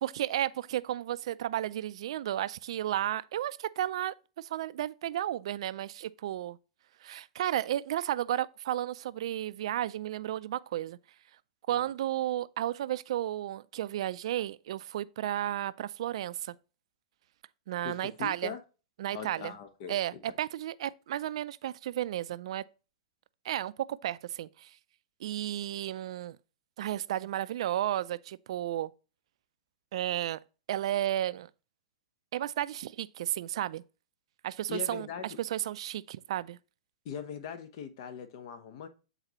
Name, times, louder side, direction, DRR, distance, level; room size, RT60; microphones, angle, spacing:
voice 1, 0.0-6.6 7.0-11.0 11.7-16.5 17.7-18.5 19.0-19.5 19.9-22.6 23.4-24.7 25.2-26.4 26.8-28.9 29.9-30.4 30.7-31.5 32.3-33.8 34.4-36.6, right 12 dB, 60° right, 0.3 m, -33 dB
voice 2, 17.8-18.6 19.1-20.0 34.7-35.4 37.0-38.9, left 7 dB, 55° left, 1.0 m, -40 dB
8.0 x 4.0 x 2.9 m
hypercardioid pair, 115°, 3 cm